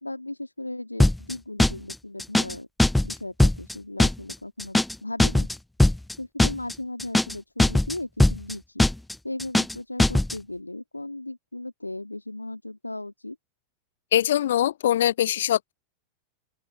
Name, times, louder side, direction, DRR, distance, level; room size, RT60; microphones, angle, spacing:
voice 1, 0.0-2.7 3.0-5.5 6.2-8.8 9.2-13.4, left 2 dB, 85° left, 2.6 m, -36 dB
sound 1, 1.0-1.3 1.6-1.9 2.2-2.5 2.8-3.1 3.4-3.7 4.0-4.3 4.6-4.9 5.2-5.5 5.8-6.1 6.4-6.7 7.0-7.3 7.6-7.9 8.2-8.5 8.8-9.1 9.4-9.7 10.0-10.3, left 1 dB, 5° left, 0.6 m, -20 dB
voice 2, 14.1-15.7, left 11 dB, 60° left, 0.4 m, -22 dB
open air
figure-of-eight pair, 90°, 0 cm